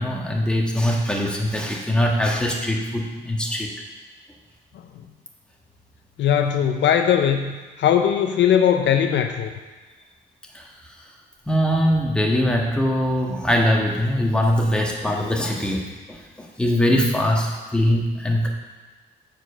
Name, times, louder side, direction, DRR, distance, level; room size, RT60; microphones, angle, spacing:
voice 1, 0.0-3.7 10.5-10.7 11.5-18.5, equal, 5° left, -1 dB, 1.5 m, -22 dB
voice 2, 4.7-5.0 6.2-9.5, left 9 dB, 65° left, 6 dB, 0.6 m, -20 dB
7.5 x 5.2 x 6.2 m, 1.3 s
cardioid pair, 90°, 20 cm